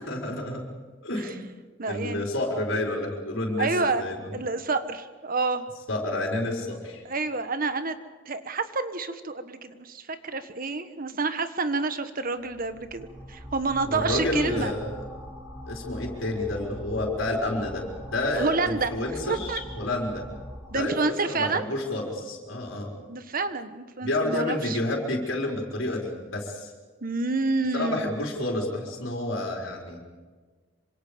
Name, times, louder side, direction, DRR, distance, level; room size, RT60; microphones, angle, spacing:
voice 1, 0.1-0.6 1.0-1.3 1.8-4.4 5.9-7.0 13.9-15.0 15.7-20.2 20.7-22.9 24.0-26.7 27.7-30.0, left 1 dB, 85° left, -1 dB, 4.8 m, -29 dB
voice 2, 1.8-2.3 3.6-4.0 4.3-5.7 7.0-8.0 8.3-14.7 18.4-18.9 19.3-19.6 20.7-21.6 23.1-24.8 27.0-28.0, right 3 dB, 45° right, 10 dB, 1.4 m, -28 dB
sound 1, 12.4-20.8, equal, 15° right, 5.4 m, -41 dB
26.5 x 25.5 x 5.2 m, 1.4 s
head